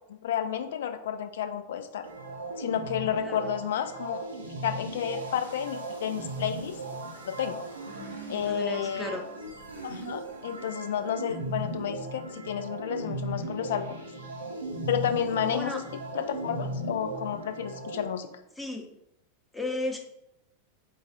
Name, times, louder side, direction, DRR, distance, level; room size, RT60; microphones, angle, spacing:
voice 1, 0.1-2.1 2.6-6.8 7.3-7.6 8.3-9.2 9.8-14.0 14.9-15.8 16.1-18.3, left 9 dB, 60° left, 9 dB, 0.4 m, -31 dB
sound 1, 2.0-18.0, right 2 dB, 75° right, 0.8 m, -37 dB
voice 2, 8.5-9.2 15.5-15.8 18.6-18.8 19.5-20.0, left 1 dB, 5° left, 2 dB, 0.7 m, -34 dB
4.7 x 2.3 x 4.1 m, 0.83 s
figure-of-eight pair, 90°, 0 cm